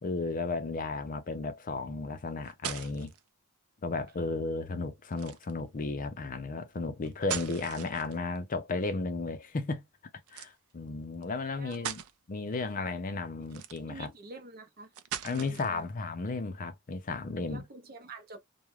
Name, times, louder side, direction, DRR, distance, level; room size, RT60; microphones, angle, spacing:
voice 1, 0.0-3.1 3.8-9.8 10.3-12.0 12.3-14.1 15.2-17.6, left 3 dB, 40° left, 0.5 m, -34 dB
sound 1, 2.2-3.2 5.1-5.6 7.0-8.4 10.3-10.5 11.2-11.3 11.7-12.1 13.4-14.1 14.9-15.8, right 9 dB, 75° right, 0.4 m, -39 dB
voice 2, 11.5-11.9 13.4-13.6 13.9-14.9 15.2-15.9 17.5-18.4, right 2 dB, 45° right, 0.7 m, -47 dB
2.3 x 2.1 x 3.0 m
head